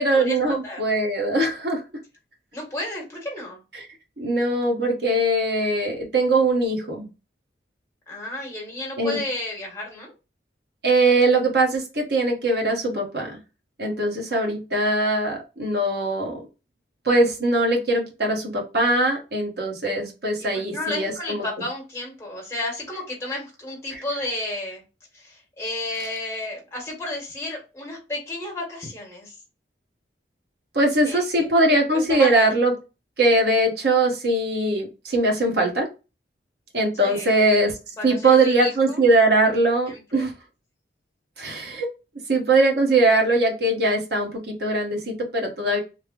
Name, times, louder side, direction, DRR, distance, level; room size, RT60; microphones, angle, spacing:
voice 1, 0.0-1.8 3.7-3.9 4.2-7.1 9.0-9.2 10.8-13.4 13.8-16.4 17.0-21.4 23.9-24.0 30.7-32.7 33.2-35.9 36.7-37.7 38.0-40.3 41.4-41.9 42.3-45.8, right 2 dB, 60° right, 0 dB, 1.0 m, -21 dB
voice 2, 2.5-3.6 8.1-10.1 20.4-24.8 25.1-29.3 31.0-31.5 31.9-32.5 37.0-37.5 38.0-39.0 39.9-40.2, left 2 dB, 15° left, -1 dB, 1.1 m, -32 dB
3.2 x 2.0 x 3.6 m, 0.30 s
head